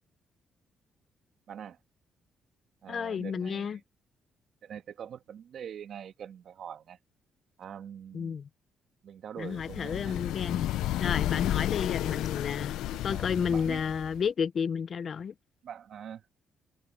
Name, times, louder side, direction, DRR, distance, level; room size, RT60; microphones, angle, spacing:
voice 1, 1.5-1.8 2.8-3.8 4.6-7.0 7.6-8.4 9.0-10.2 13.1-13.8 15.6-16.2, right 8 dB, 65° right, 2.0 m, -44 dB
voice 2, 2.9-3.8 8.1-8.5 9.4-10.7 11.0-15.3, left 6 dB, 50° left, 0.7 m, -31 dB
Instant Wind, 9.5-14.3, left 14 dB, 90° left, 0.5 m, -32 dB
cardioid pair, 90°, 0 cm